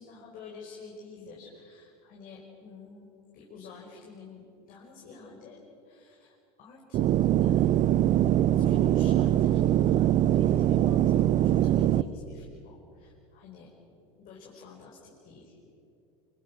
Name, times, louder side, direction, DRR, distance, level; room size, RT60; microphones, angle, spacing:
voice 1, 0.0-5.6 5.8-7.9 8.6-13.7 14.2-15.6, left 4 dB, 50° left, -3 dB, 5.2 m, -49 dB
sound 1, 6.9-12.0, right 12 dB, 40° right, 0.7 m, -22 dB
28.0 x 23.0 x 6.3 m, 2.8 s
hypercardioid pair, 85°, 19 cm